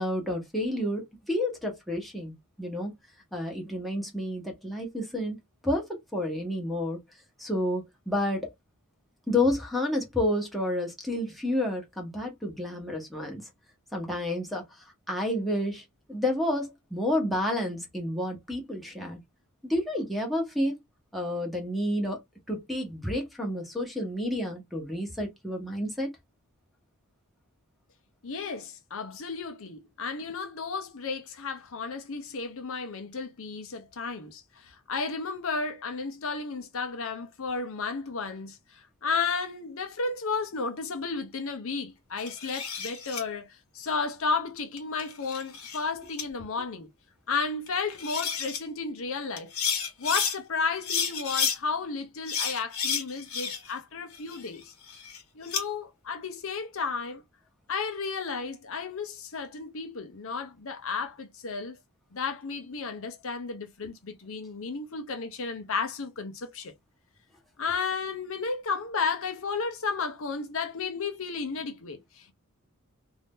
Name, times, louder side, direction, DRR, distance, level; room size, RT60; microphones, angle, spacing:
voice 1, 0.0-2.9 3.3-5.4 5.6-7.0 7.4-8.5 9.3-13.4 13.9-19.2 19.6-20.8 21.1-22.2 22.5-26.1, left 1 dB, ahead, 1.1 m, -30 dB
voice 2, 28.2-46.9 47.3-49.5 50.0-54.7 55.3-57.2 57.7-61.8 62.1-66.7 67.6-72.3, left 4 dB, 65° left, 0.8 m, -33 dB
sound 1, 42.2-43.2 44.8-45.8 46.2-46.3 47.7-47.8 48.0-48.6 49.4-50.4 50.8-51.6 52.3-53.8 54.1-55.6, left 6 dB, 80° left, 1.2 m, -31 dB
2.7 x 2.7 x 3.5 m
head